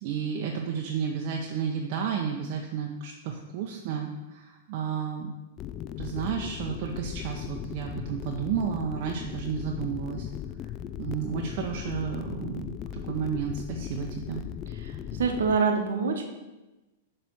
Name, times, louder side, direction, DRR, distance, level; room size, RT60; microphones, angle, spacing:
voice 1, 0.0-5.3 6.0-10.3 10.6-10.7 11.0-12.7 13.1-14.4, right 7 dB, 50° right, 0 dB, 0.7 m, -32 dB
sound 1, 5.6-15.6, left 10 dB, 35° left, 0.3 m, -37 dB
voice 2, 14.8-16.2, right 5 dB, 80° right, 4 dB, 1.1 m, -26 dB
6.9 x 3.3 x 6.1 m, 1.1 s
hypercardioid pair, 125°, 0 cm